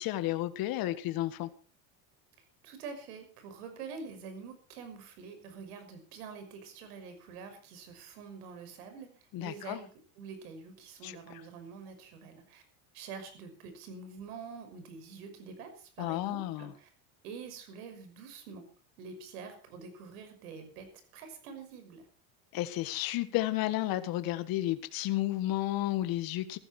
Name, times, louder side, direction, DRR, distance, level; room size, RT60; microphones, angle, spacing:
voice 1, 0.0-1.5 9.3-9.8 11.0-11.4 16.0-16.7 22.5-26.6, left 15 dB, 50° left, 11 dB, 1.7 m, -32 dB
voice 2, 2.6-9.9 10.2-12.6 12.9-16.9 17.2-18.7 19.0-22.0, right 5 dB, 90° right, 8 dB, 6.0 m, -46 dB
15.5 x 15.0 x 4.4 m, 0.38 s
supercardioid pair, 130°, 44 cm